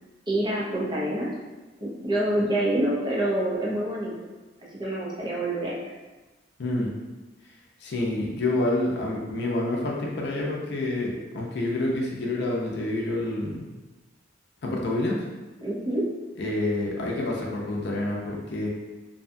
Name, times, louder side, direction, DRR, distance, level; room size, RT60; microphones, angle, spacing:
voice 1, 0.3-1.3 1.8-4.1 4.7-5.8 15.6-16.0, right 1 dB, 25° right, -5 dB, 0.5 m, -26 dB
voice 2, 6.6-6.9 7.8-13.7 14.6-15.2 16.4-18.7, left 2 dB, 60° left, -2 dB, 0.5 m, -28 dB
2.6 x 2.2 x 2.6 m, 1.2 s
head